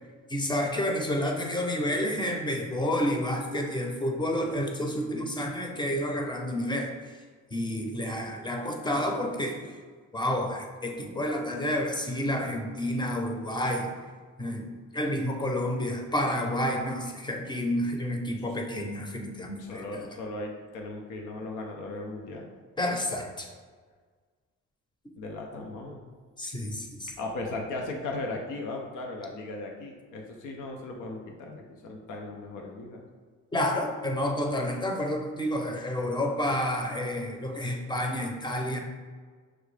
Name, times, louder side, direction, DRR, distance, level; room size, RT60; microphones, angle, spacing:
voice 1, 0.3-6.9 7.5-9.7 10.1-13.9 14.4-20.2 22.8-23.5 26.4-27.1 33.5-38.8, left 1 dB, 15° left, 2 dB, 0.7 m, -30 dB
voice 2, 19.6-22.5 25.2-26.0 27.2-33.0, left 2 dB, 90° left, 1 dB, 0.7 m, -37 dB
6.1 x 2.3 x 3.2 m, 1.6 s
cardioid pair, 90°, 30 cm